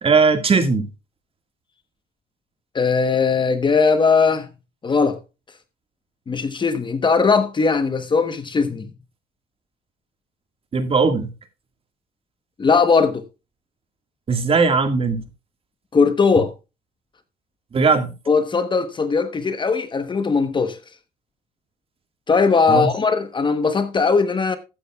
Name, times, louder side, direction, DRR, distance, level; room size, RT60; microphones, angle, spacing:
voice 1, 0.0-0.9 10.7-11.3 14.3-15.2 17.7-18.1 22.7-22.9, right 4 dB, 35° right, 1.8 m, -18 dB
voice 2, 2.7-4.5 4.8-5.2 6.3-8.9 12.6-13.2 15.9-16.5 18.3-20.8 22.3-24.6, left 5 dB, 30° left, 1.1 m, -19 dB
14.0 x 9.6 x 2.3 m
cardioid pair, 110°, 17 cm